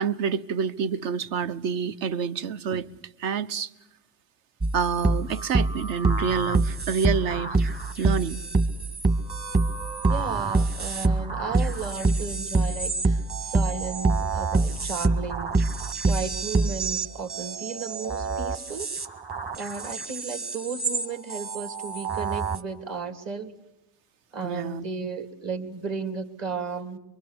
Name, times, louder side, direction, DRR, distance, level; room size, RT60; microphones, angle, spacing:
voice 1, 0.0-2.9 3.2-3.7 4.7-8.4 24.4-24.8, right 6 dB, 60° right, 1.1 m, -28 dB
sound 1, 4.6-21.0 21.3-22.6, right 3 dB, 25° right, 1.9 m, -26 dB
voice 2, 10.1-15.6 16.1-18.9 19.5-23.5 24.3-27.0, right 5 dB, 40° right, 2.7 m, -34 dB
24.0 x 23.5 x 8.2 m
hypercardioid pair, 90°, 39 cm